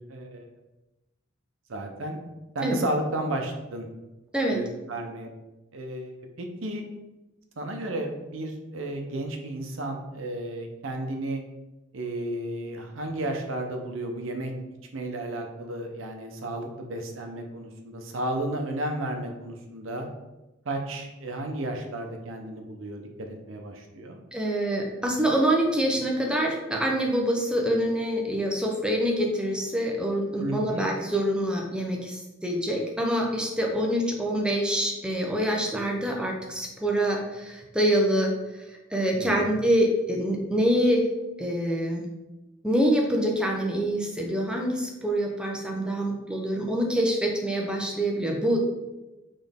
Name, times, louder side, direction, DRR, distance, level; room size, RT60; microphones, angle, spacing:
voice 1, 0.1-0.4 1.7-2.2 2.5-3.9 4.5-5.3 5.7-6.8 7.6-11.4 11.9-14.5 14.9-20.1 20.7-24.2 30.4-30.8 39.1-39.5, right 1 dB, 80° right, 4 dB, 0.7 m, -33 dB
voice 2, 24.3-41.1 41.4-42.0 42.6-48.7, right 1 dB, 5° right, 0 dB, 0.6 m, -26 dB
4.3 x 3.2 x 3.5 m, 1.0 s
head